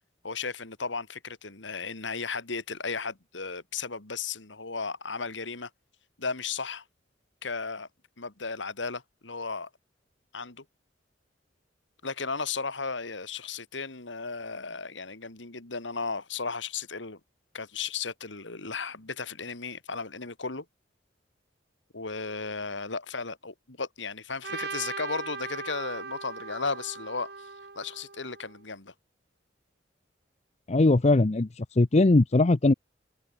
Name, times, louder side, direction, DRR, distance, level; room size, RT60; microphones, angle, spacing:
voice 1, 0.2-5.7 6.2-6.8 7.4-7.9 8.2-9.7 10.3-10.6 12.0-17.2 17.5-20.7 21.9-27.5 27.7-28.9, left 4 dB, 85° left, 2.6 m, -35 dB
Trumpet, 24.4-28.6, right 5 dB, 60° right, 2.0 m, -39 dB
voice 2, 30.7-32.7, left 2 dB, 35° left, 0.6 m, -21 dB
head